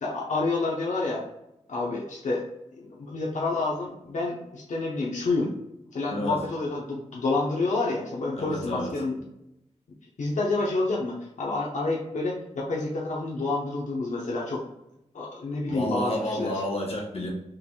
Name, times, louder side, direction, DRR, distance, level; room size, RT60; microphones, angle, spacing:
voice 1, 0.0-1.2 1.7-2.5 2.8-5.5 5.9-9.2 10.2-14.6 15.1-16.6, left 3 dB, 85° left, -3 dB, 0.9 m, -28 dB
voice 2, 6.1-6.4 8.3-8.9 15.7-17.3, left 1 dB, 55° left, -1 dB, 1.3 m, -30 dB
5.7 x 3.4 x 2.3 m, 0.86 s
wide cardioid pair, 115°, 12 cm